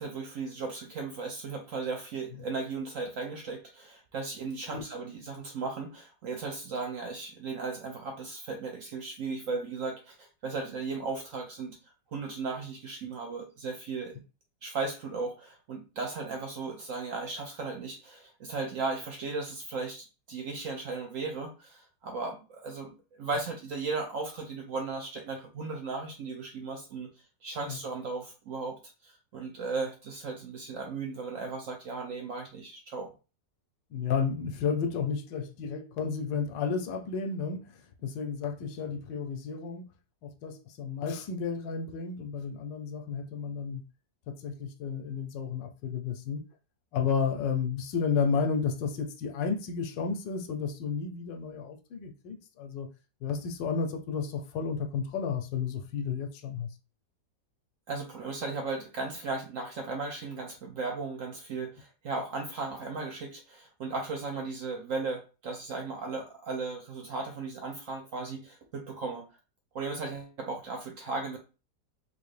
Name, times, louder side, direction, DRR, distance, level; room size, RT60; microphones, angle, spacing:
voice 1, 0.0-11.8 12.1-14.2 14.6-27.1 27.4-33.1 57.9-69.3 69.7-71.4, right 4 dB, 65° right, 0.8 m, -36 dB
voice 2, 33.9-39.9 40.2-43.8 44.3-46.4 46.9-52.9 53.2-56.7, left 6 dB, 90° left, 1.3 m, -32 dB
3.6 x 2.6 x 3.2 m
omnidirectional pair, 1.9 m